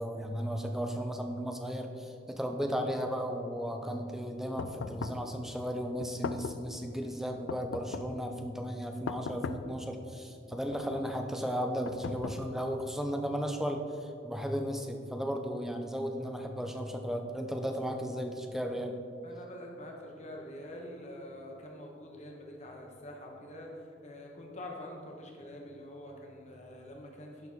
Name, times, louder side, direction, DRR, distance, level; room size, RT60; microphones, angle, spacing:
voice 1, 0.0-19.0, equal, ahead, 4 dB, 0.5 m, -35 dB
sound 1, 4.6-5.3 6.0-6.7 7.5-8.2 9.1-9.8 10.5-11.1 11.8-12.7, left 5 dB, 75° left, 0.3 m, -39 dB
voice 2, 19.2-27.5, left 1 dB, 35° left, 0 dB, 1.0 m, -46 dB
11.0 x 4.2 x 3.5 m, 2.5 s
head